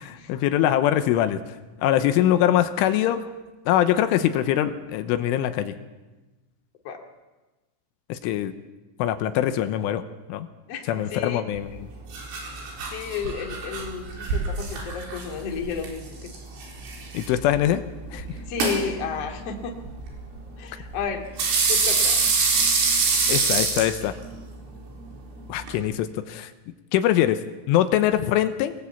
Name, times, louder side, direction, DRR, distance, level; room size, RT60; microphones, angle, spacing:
voice 1, 0.0-1.4 1.8-3.2 3.7-5.7 8.1-8.5 9.0-10.0 10.3-10.5 10.9-11.9 17.2-17.8 18.1-18.3 23.3-24.1 25.5-26.5 26.9-27.4 27.7-28.7, left 11 dB, 80° left, 10 dB, 3.4 m, -23 dB
voice 2, 10.7-11.4 12.9-16.3 18.5-19.8 20.6-21.2 21.7-22.2, left 6 dB, 40° left, 3 dB, 2.6 m, -32 dB
sound 1, 11.5-25.8, right 4 dB, 80° right, 7.0 m, -27 dB
25.0 x 19.0 x 8.4 m, 1.2 s
omnidirectional pair, 5.7 m